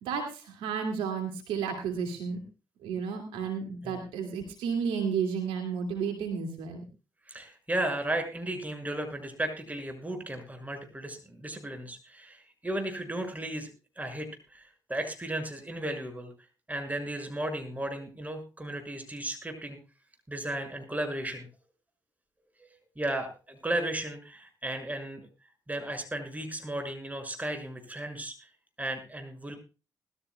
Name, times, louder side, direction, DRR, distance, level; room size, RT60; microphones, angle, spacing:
voice 1, 0.0-2.4 2.8-6.8, right 6 dB, 80° right, 4 dB, 2.3 m, -32 dB
voice 2, 7.3-13.7 14.0-16.3 16.7-19.8 20.3-21.5 22.6-25.2 25.7-28.5 28.8-29.6, right 1 dB, 15° right, 5 dB, 6.1 m, -35 dB
20.5 x 14.0 x 2.3 m, 0.31 s
hypercardioid pair, 45°, 9 cm